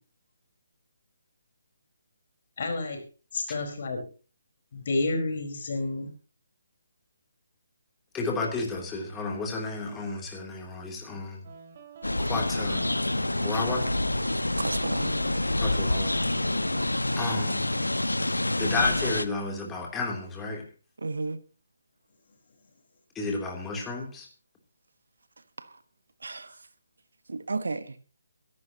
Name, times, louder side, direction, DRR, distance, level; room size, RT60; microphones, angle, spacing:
voice 1, 2.6-3.0 3.3-4.0 4.7-6.1, left 2 dB, 45° left, 4.7 m, -30 dB
voice 2, 8.1-11.5 12.2-12.8 13.3-13.9 15.5-16.1 17.2-17.8 18.6-20.7 23.1-24.3, left 3 dB, 10° left, 3.1 m, -32 dB
sound 1, 11.4-16.9, right 4 dB, 35° right, 2.6 m, -47 dB
sound 2, 12.0-19.3, left 1 dB, 85° left, 1.0 m, -27 dB
voice 3, 14.6-15.2 21.0-21.4 25.6-25.7 26.2-26.6 27.3-28.0, right 3 dB, 65° right, 1.3 m, -33 dB
24.0 x 11.5 x 2.9 m
figure-of-eight pair, 145°, 0 cm